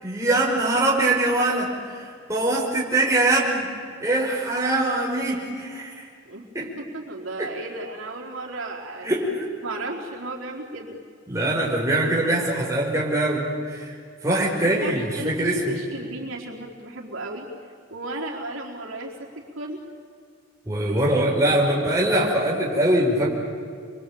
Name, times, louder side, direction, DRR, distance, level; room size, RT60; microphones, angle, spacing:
voice 1, 0.0-3.7 4.0-6.0 6.5-6.7 7.4-7.5 9.0-9.3 11.3-13.9 14.2-15.8 20.7-23.3, right 1 dB, 15° right, -4 dB, 5.6 m, -23 dB
voice 2, 6.2-9.1 9.6-11.0 14.6-19.8 20.8-21.2 21.5-21.8, right 2 dB, 80° right, -2 dB, 4.5 m, -35 dB
28.5 x 23.5 x 8.9 m, 2.2 s
head